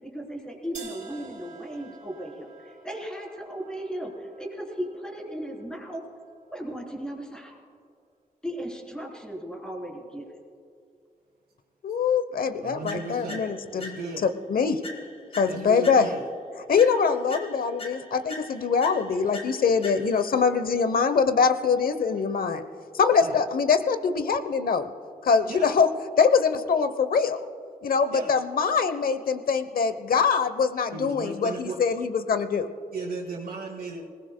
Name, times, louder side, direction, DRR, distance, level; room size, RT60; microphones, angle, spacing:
voice 1, 0.0-6.0 6.5-7.6 8.4-10.4, equal, 5° left, -2 dB, 3.4 m, -36 dB
sound 1, 0.7-6.7, right 4 dB, 55° right, 3.4 m, -49 dB
voice 2, 11.8-14.0 14.5-14.8 15.4-16.1 16.7-22.6 22.9-24.9 25.2-25.9 26.2-27.4 27.8-32.7, left 5 dB, 75° left, 10 dB, 0.8 m, -23 dB
voice 3, 12.6-13.5 13.8-14.3 15.4-16.2 19.1-19.7 20.2-20.4 23.2-23.4 25.5-25.7 28.1-28.3 30.9-31.8 32.9-34.0, right 4 dB, 80° right, -6 dB, 2.4 m, -36 dB
sound 2, 12.9-14.3 14.8-16.4 16.8-20.4, left 2 dB, 40° left, 2.2 m, -43 dB
27.0 x 19.5 x 2.2 m, 2.4 s
wide cardioid pair, 135°, 15 cm